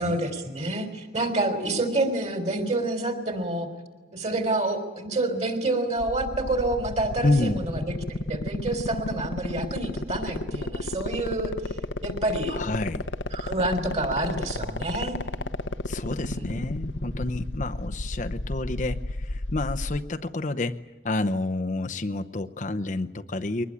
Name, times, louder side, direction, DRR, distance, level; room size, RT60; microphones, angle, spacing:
voice 1, 0.0-3.7 4.1-11.5 12.0-12.6 13.3-15.2 16.1-16.6, right 2 dB, 35° right, 7 dB, 3.6 m, -28 dB
sound 1, 6.0-20.0, left 2 dB, 80° left, 1.1 m, -31 dB
voice 2, 7.2-7.6 12.5-13.1 15.9-23.6, left 2 dB, 40° left, 7 dB, 0.7 m, -29 dB
22.5 x 20.0 x 9.9 m, 1.3 s
head